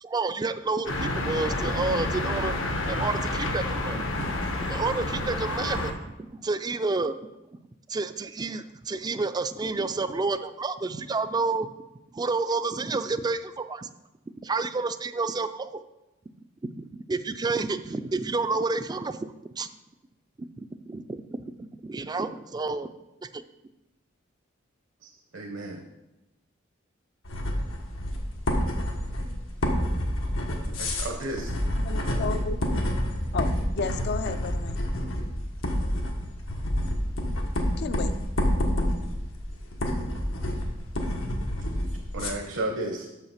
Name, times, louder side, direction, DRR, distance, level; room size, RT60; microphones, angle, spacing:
voice 1, 0.0-2.5 2.9-4.3 4.6-7.1 7.9-11.7 12.1-13.9 14.4-15.8 16.8-19.7 20.6-21.5 21.8-22.9 23.3-23.4, right 3 dB, 20° right, 11 dB, 0.3 m, -30 dB
sound 1, 0.9-5.9, left 2 dB, 70° left, 1.0 m, -29 dB
voice 2, 25.0-25.8 30.8-31.5 42.1-43.1, right 2 dB, 70° right, 1 dB, 0.9 m, -33 dB
sound 2, 27.2-42.3, equal, 90° left, 1.4 m, -28 dB
voice 3, 31.8-32.8 33.3-34.8 37.8-38.1, left 4 dB, 55° left, 11 dB, 0.5 m, -33 dB
6.9 x 5.7 x 5.7 m, 0.98 s
head